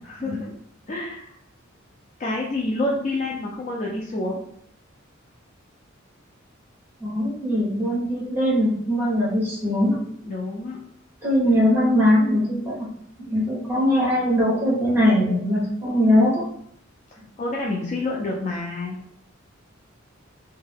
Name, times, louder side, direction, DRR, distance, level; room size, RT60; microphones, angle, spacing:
voice 1, 0.0-0.5 0.9-1.3 2.2-4.4 10.2-10.8 17.4-19.0, left 2 dB, 35° left, -3 dB, 0.4 m, -28 dB
voice 2, 7.0-10.0 11.2-12.9 13.3-16.4, equal, 10° right, -6 dB, 1.2 m, -21 dB
2.6 x 2.1 x 3.3 m, 0.67 s
head